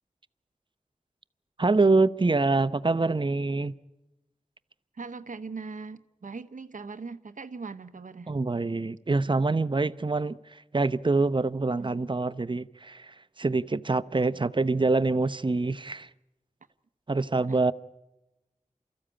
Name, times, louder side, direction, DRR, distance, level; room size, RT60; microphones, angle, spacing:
voice 1, 1.6-3.7 8.3-16.1 17.1-17.7, right 3 dB, 35° right, 0.7 m, -25 dB
voice 2, 4.9-8.3 11.8-12.0 14.3-14.4 17.5-17.6, right 4 dB, 75° right, 0.9 m, -40 dB
30.0 x 14.0 x 8.8 m
wide cardioid pair, 70°, 13 cm